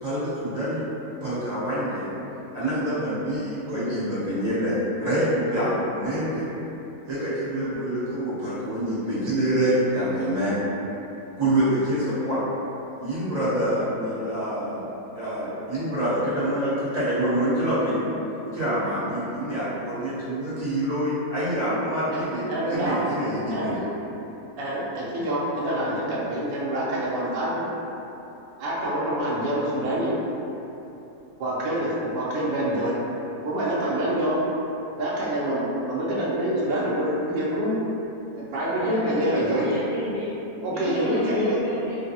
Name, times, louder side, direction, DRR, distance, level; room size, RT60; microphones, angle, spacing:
voice 1, 0.0-0.8 1.2-2.0 2.5-6.5 7.1-10.6 11.4-12.4 13.0-14.9 15.1-18.0 18.5-23.8, right 1 dB, 30° right, -12 dB, 1.0 m, -26 dB
voice 2, 22.1-23.0 23.5-23.7 24.5-27.7 28.6-30.2 31.4-33.0 33.4-34.4 35.0-37.8 38.3-39.7 40.6-41.6, right 1 dB, 60° right, -6 dB, 0.6 m, -26 dB
voice 3, 38.6-42.0, left 1 dB, 70° left, -10 dB, 0.9 m, -32 dB
3.3 x 2.2 x 2.7 m, 3.0 s
omnidirectional pair, 1.6 m